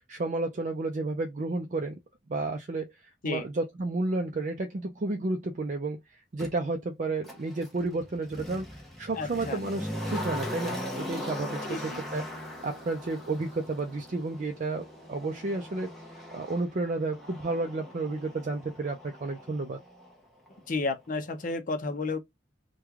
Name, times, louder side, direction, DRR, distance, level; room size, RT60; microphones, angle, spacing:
voice 1, 0.1-2.0 2.3-2.9 3.2-8.7 9.0-15.9 16.3-19.8, right 3 dB, 40° right, 0.4 m, -32 dB
Motor vehicle (road), 6.4-6.5 7.2-20.2 20.5-20.6, left 1 dB, ahead, 0.8 m, -40 dB
voice 2, 9.2-9.6 11.7-12.0 20.7-22.2, left 3 dB, 45° left, 0.6 m, -32 dB
3.1 x 2.2 x 3.5 m
head